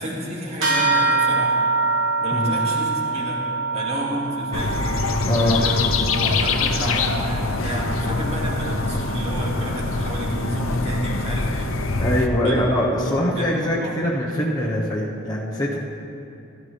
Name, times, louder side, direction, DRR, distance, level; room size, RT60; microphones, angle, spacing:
voice 1, 0.0-1.6 2.2-3.5 3.7-4.8 5.6-5.8 6.1-11.7 12.4-12.6 13.1-14.0, right 1 dB, 30° right, -3 dB, 2.3 m, -31 dB
sound 1, 0.6-10.4, right 3 dB, 75° right, 3.4 m, -26 dB
sound 2, 4.5-12.3, left 3 dB, 80° left, 0.8 m, -24 dB
voice 2, 5.2-5.6 12.0-15.8, left 1 dB, 20° left, -5 dB, 1.1 m, -23 dB
17.0 x 12.5 x 3.4 m, 2.7 s
head